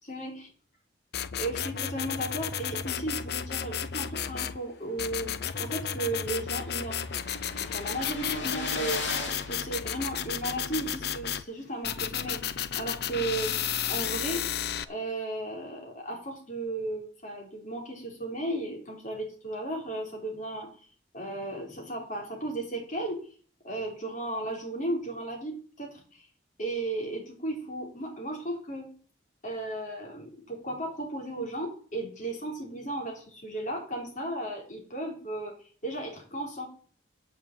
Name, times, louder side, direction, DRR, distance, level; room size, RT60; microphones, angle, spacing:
voice 1, 0.0-0.5 1.3-7.1 7.6-9.0 9.5-13.6 13.8-14.5 14.9-20.7 21.1-23.3 23.6-26.3 26.6-28.9 29.4-35.6 35.8-36.7, right 2 dB, 45° left, 1 dB, 3.7 m, -35 dB
sound 1, 1.1-4.6 5.0-11.4 11.8-14.8, left 8 dB, 60° left, 0.6 m, -33 dB
sound 2, 5.0-5.1 5.4-5.5 5.7-10.5, left 3 dB, 80° left, 2.4 m, -38 dB
9.4 x 6.1 x 7.4 m, 0.43 s
head